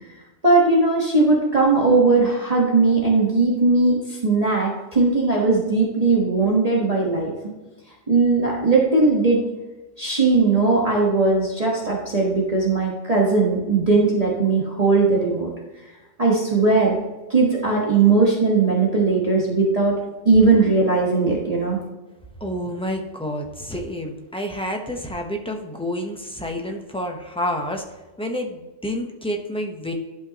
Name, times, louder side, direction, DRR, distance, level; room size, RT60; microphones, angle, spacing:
voice 1, 0.4-7.3 8.1-9.4 10.0-15.5 16.2-17.0 17.3-20.0 20.2-21.8, right 3 dB, 30° right, -4 dB, 1.4 m, -18 dB
voice 2, 22.4-27.8 28.2-29.9, equal, 5° left, 2 dB, 0.8 m, -29 dB
11.5 x 5.4 x 2.9 m, 1.1 s
omnidirectional pair, 1.3 m